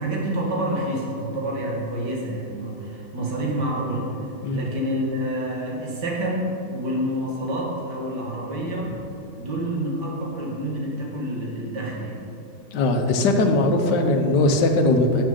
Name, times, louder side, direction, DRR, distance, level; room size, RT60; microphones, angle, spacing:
voice 1, 0.0-9.0 9.4-12.2, right 1 dB, 90° right, -2 dB, 2.3 m, -28 dB
voice 2, 12.7-15.2, left 2 dB, 85° left, 5 dB, 1.5 m, -20 dB
12.5 x 7.0 x 3.8 m, 2.9 s
omnidirectional pair, 1.8 m